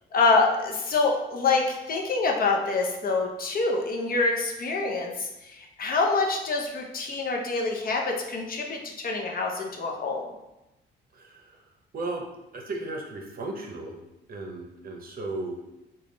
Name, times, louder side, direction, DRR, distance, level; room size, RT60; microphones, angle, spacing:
voice 1, 0.1-10.3, left 3 dB, 45° left, 1 dB, 0.7 m, -26 dB
voice 2, 11.1-11.7 11.9-12.2 12.5-14.0 14.3-15.8, right 2 dB, 50° right, 1 dB, 0.7 m, -35 dB
3.4 x 2.3 x 3.8 m, 0.97 s
cardioid pair, 90°, 20 cm